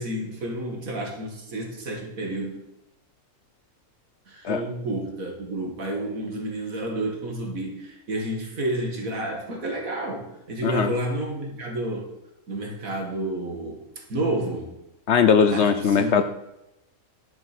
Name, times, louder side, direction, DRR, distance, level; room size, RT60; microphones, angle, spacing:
voice 1, 0.0-2.6 4.3-12.1 12.5-13.8 14.1-14.7 15.5-16.2, right 1 dB, 70° right, 1 dB, 2.4 m, -30 dB
voice 2, 10.6-10.9 15.1-16.2, left 6 dB, 60° left, 10 dB, 0.8 m, -19 dB
11.0 x 6.7 x 6.0 m, 0.89 s
omnidirectional pair, 1.5 m